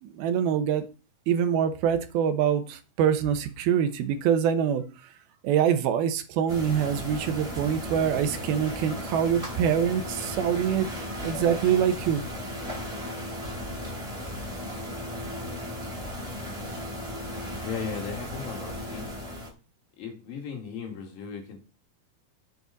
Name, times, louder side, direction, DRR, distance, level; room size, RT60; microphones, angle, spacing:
voice 1, 0.0-0.8 1.3-4.8 5.4-10.9 11.2-12.2, right 8 dB, 90° right, 2.9 m, -25 dB
sound 1, 6.5-19.5, left 1 dB, 10° right, 2.3 m, -36 dB
voice 2, 17.6-19.1 20.0-21.6, left 6 dB, 70° left, 3.8 m, -36 dB
9.6 x 7.8 x 4.0 m
omnidirectional pair, 4.3 m